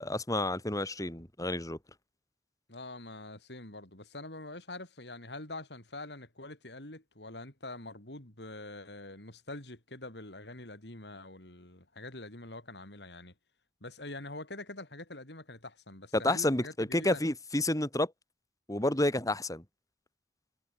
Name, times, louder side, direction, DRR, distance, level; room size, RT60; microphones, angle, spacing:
voice 1, 0.0-1.8 16.1-18.1 18.7-19.6, left 1 dB, 20° left, 3.3 m, -30 dB
voice 2, 2.7-13.3 13.8-17.2, left 2 dB, 70° left, 5.6 m, -45 dB
head